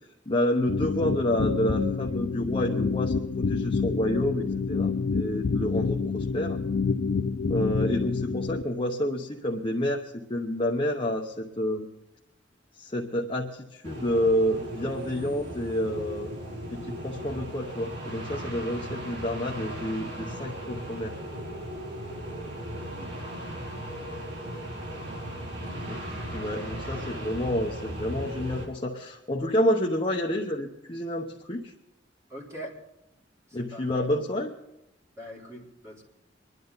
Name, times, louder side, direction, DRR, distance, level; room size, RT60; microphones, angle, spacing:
voice 1, 0.3-6.6 7.5-11.9 12.8-16.3 16.7-21.1 25.9-26.0 26.3-31.7 33.5-34.5, left 1 dB, 30° left, -1 dB, 1.0 m, -29 dB
sound 1, 0.7-8.6, left 4 dB, 60° left, 0.5 m, -28 dB
sound 2, 13.8-28.7, equal, 70° right, 4.7 m, -37 dB
voice 2, 22.9-23.3 25.5-25.9 27.0-27.1 32.3-32.7 33.7-34.1 35.2-36.0, equal, 15° right, -4 dB, 3.9 m, -43 dB
25.0 x 11.0 x 4.0 m, 0.84 s
head